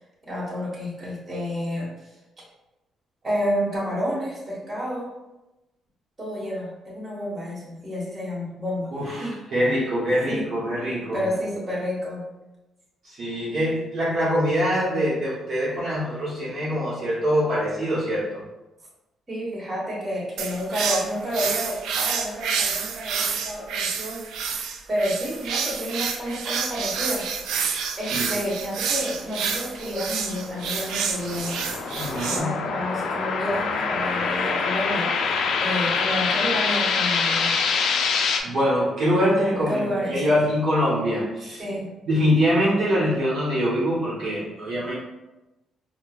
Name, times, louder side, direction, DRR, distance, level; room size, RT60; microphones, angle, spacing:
voice 1, 0.3-2.1 3.2-5.1 6.2-9.3 10.3-10.5 11.1-12.2 19.3-24.6 24.9-27.3 28.0-31.7 32.2-37.6 39.5-40.3 41.5-41.9, equal, 30° right, -6 dB, 1.5 m, -30 dB
voice 2, 8.9-11.2 13.0-18.4 28.1-28.3 32.0-32.5 38.4-41.6 42.1-44.9, equal, 55° right, -8 dB, 1.1 m, -24 dB
sound 1, 20.4-32.4, right 6 dB, 85° right, 0.3 m, -28 dB
sound 2, 30.0-38.4, left 5 dB, 70° left, 0.4 m, -25 dB
4.4 x 2.3 x 2.4 m, 1.0 s
cardioid pair, 90°, 0 cm